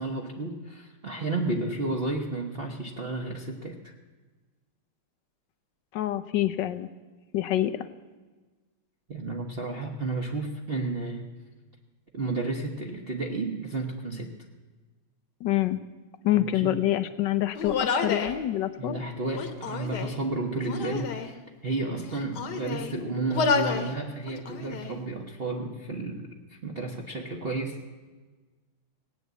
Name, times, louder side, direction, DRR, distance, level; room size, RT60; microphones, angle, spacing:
voice 1, 0.0-3.9 9.1-11.3 12.1-14.4 16.3-16.8 18.8-27.8, right 2 dB, 35° right, 1 dB, 0.9 m, -32 dB
voice 2, 5.9-6.9 7.3-7.9 15.4-15.8 16.2-19.0, left 13 dB, 70° left, 12 dB, 1.1 m, -26 dB
Human voice, 17.6-18.4 19.3-20.2 20.6-21.3 22.0-22.9 23.3-23.9 24.3-24.9, left 5 dB, 55° left, 1.6 m, -29 dB
18.0 x 9.1 x 8.1 m, 1.3 s
omnidirectional pair, 2.4 m